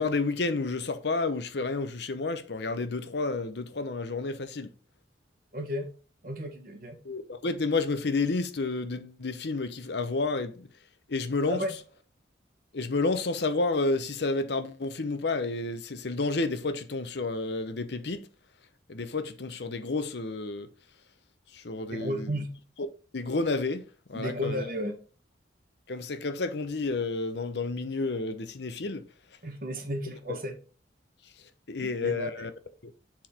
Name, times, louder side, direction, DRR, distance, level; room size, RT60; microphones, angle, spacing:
voice 1, 0.0-4.7 7.0-10.7 11.1-11.6 12.7-18.2 18.9-20.7 21.5-22.3 22.8-22.9 23.1-23.8 24.1-24.7 25.9-29.0 30.3-30.4 31.7-32.5 32.8-32.9, left 3 dB, 60° left, 0.8 m, -30 dB
voice 2, 5.5-5.9 6.2-7.0 11.5-11.8 21.9-22.5 24.1-24.9 29.4-30.6 31.8-32.5, equal, 50° right, 1.4 m, -33 dB
7.2 x 4.4 x 4.2 m
head